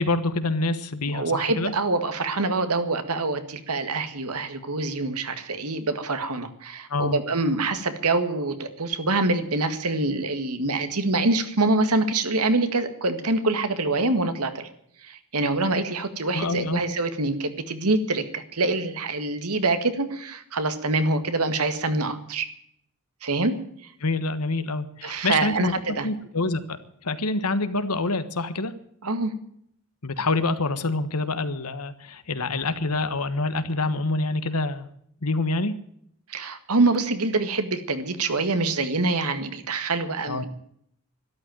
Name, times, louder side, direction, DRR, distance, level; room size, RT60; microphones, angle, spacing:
voice 1, 0.0-1.7 6.9-7.2 16.3-16.8 24.0-25.7 26.0-28.7 30.0-34.9 35.2-35.8 40.3-40.4, left 2 dB, 85° left, 11 dB, 1.5 m, -26 dB
voice 2, 1.1-14.7 15.0-22.5 23.2-23.5 25.0-26.1 29.0-29.3 36.3-40.5, right 2 dB, 80° right, 9 dB, 1.9 m, -25 dB
13.0 x 12.0 x 9.0 m, 0.70 s
head